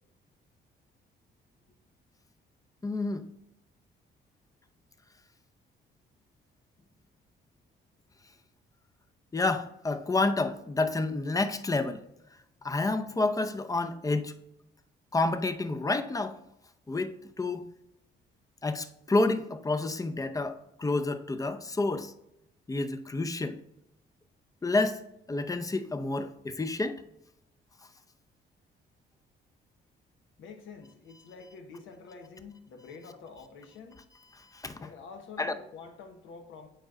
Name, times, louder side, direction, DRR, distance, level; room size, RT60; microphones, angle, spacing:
voice 1, 2.8-3.2 9.3-12.0 12.6-14.3 15.1-16.4 16.9-17.6 18.6-22.1 22.7-23.6 24.6-25.0 25.3-27.0 34.5-34.8 35.4-35.5, left 2 dB, 15° left, 0.6 m, -29 dB
voice 2, 30.4-34.0 34.8-36.7, left 5 dB, 80° left, 1.2 m, -47 dB
9.1 x 4.5 x 2.5 m
cardioid pair, 90°, 20 cm